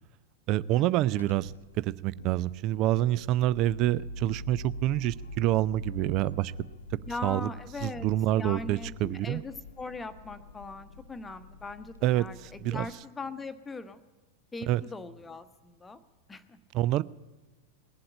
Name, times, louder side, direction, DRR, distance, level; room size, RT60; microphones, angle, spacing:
voice 1, 0.5-6.5 7.2-7.5 7.8-9.4 12.0-12.9 14.7-14.8 16.7-17.0, right 14 dB, 40° right, 20 dB, 0.4 m, -27 dB
sound 1, 1.2-12.9, left 1 dB, 70° left, 0.7 m, -45 dB
voice 2, 7.1-8.1 8.4-14.0 14.5-16.0 16.3-16.6, left 3 dB, 10° left, 10 dB, 1.0 m, -40 dB
19.5 x 7.7 x 8.7 m, 1.3 s
figure-of-eight pair, 90°, 0 cm